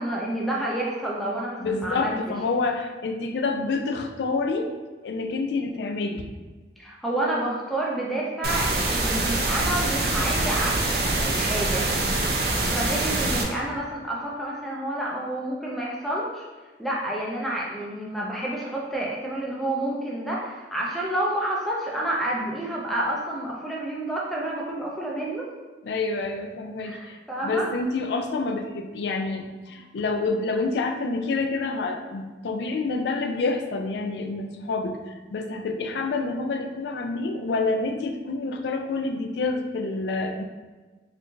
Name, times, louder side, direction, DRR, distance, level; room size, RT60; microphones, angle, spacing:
voice 1, 0.0-2.2 6.8-11.9 12.7-16.4 16.8-25.5 26.8-27.7, right 1 dB, ahead, -4 dB, 0.4 m, -29 dB
voice 2, 1.6-4.7 5.0-6.3 25.8-27.2 27.4-40.4, left 3 dB, 70° left, 6 dB, 0.4 m, -28 dB
sound 1, 8.4-13.4, right 2 dB, 60° right, 0.5 m, -24 dB
4.4 x 2.4 x 2.5 m, 1.3 s
head